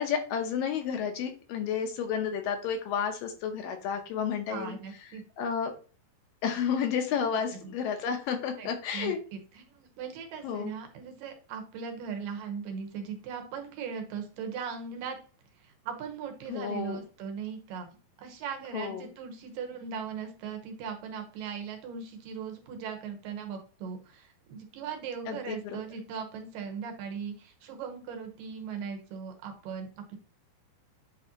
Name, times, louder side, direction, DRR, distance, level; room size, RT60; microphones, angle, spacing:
voice 1, 0.0-4.8 5.4-5.7 6.4-9.2 10.4-10.7 16.5-17.0 18.7-19.1 25.3-25.8, left 7 dB, 75° left, 5 dB, 2.4 m, -31 dB
voice 2, 4.5-5.2 7.2-7.7 8.6-15.2 15.6-17.9 18.2-30.2, right 6 dB, 70° right, 4 dB, 2.5 m, -39 dB
8.5 x 4.0 x 2.8 m, 0.38 s
omnidirectional pair, 4.3 m